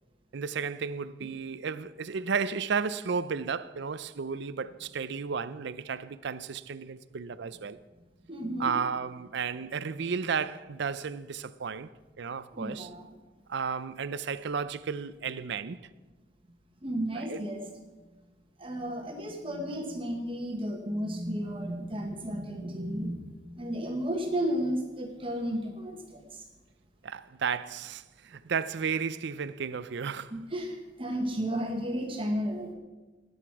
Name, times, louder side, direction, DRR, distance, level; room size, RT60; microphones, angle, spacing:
voice 1, 0.3-7.8 8.6-11.9 12.2-12.9 13.5-15.9 17.1-17.4 27.0-30.4, right 6 dB, 65° right, 0.5 m, -33 dB
voice 2, 8.3-8.7 12.5-13.0 16.8-17.6 18.6-26.4 30.3-32.7, equal, 30° right, 1.3 m, -33 dB
19.0 x 8.0 x 4.7 m
head